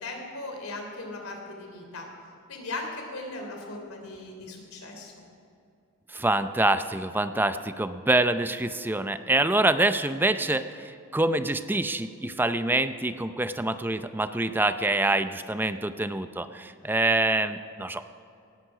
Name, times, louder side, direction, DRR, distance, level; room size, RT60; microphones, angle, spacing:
voice 1, 0.0-2.1 2.5-5.1 7.2-7.5, left 2 dB, 85° left, 2 dB, 3.4 m, -38 dB
voice 2, 6.1-18.1, right 2 dB, 10° right, 11 dB, 0.5 m, -26 dB
18.0 x 14.5 x 4.9 m, 2.6 s
head